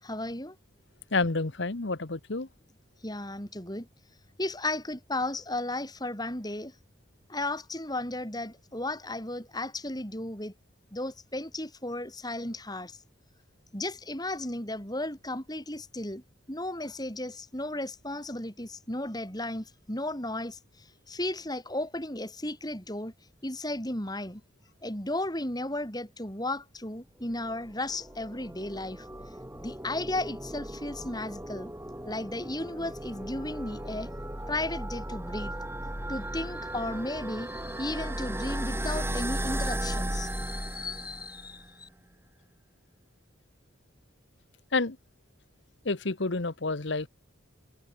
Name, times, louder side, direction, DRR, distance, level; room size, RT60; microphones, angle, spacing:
voice 1, 0.0-0.6 3.0-3.9 4.4-6.7 7.3-10.5 10.9-13.0 13.7-16.2 16.5-20.6 21.1-23.1 23.4-24.4 24.8-29.1 29.6-31.7 32.0-34.1 34.5-35.5 36.1-41.9, left 1 dB, 20° left, 6.5 m, -34 dB
voice 2, 1.1-2.5 44.7-45.0 45.8-47.1, left 3 dB, 60° left, 1.1 m, -29 dB
sound 1, 27.5-41.6, right 1 dB, 10° right, 5.4 m, -36 dB
head